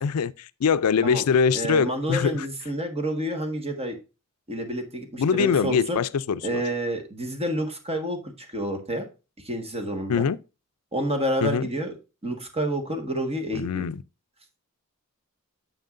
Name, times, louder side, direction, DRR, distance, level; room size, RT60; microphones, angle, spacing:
voice 1, 0.0-2.5 5.2-6.6 10.1-10.4 11.4-11.7 13.5-14.0, left 6 dB, 85° left, 0.4 m, -23 dB
voice 2, 1.5-4.0 4.5-6.0 6.4-9.1 9.4-10.2 10.9-11.9 12.2-13.8, right 1 dB, 25° right, 1.5 m, -29 dB
9.2 x 7.1 x 2.5 m
head